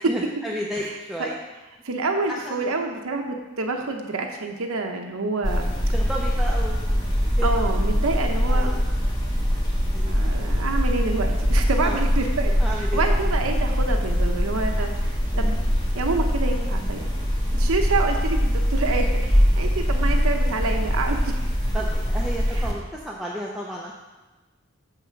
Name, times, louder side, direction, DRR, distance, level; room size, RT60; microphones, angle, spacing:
voice 1, 0.0-1.4 2.3-2.7 5.9-7.1 7.4-7.5 7.8-7.9 8.5-8.9 9.9-10.2 11.8-12.0 12.6-13.0 21.1-21.3 21.7-23.9, right 1 dB, ahead, -4 dB, 0.6 m, -32 dB
voice 2, 1.8-5.6 7.4-8.7 9.9-12.5 12.8-15.6 15.9-17.0 17.5-21.3 22.6-22.7, right 3 dB, 80° right, 3 dB, 0.8 m, -27 dB
sound 1, 5.4-22.7, equal, 20° left, 1.2 m, -22 dB
7.4 x 5.8 x 5.8 m, 1.2 s
head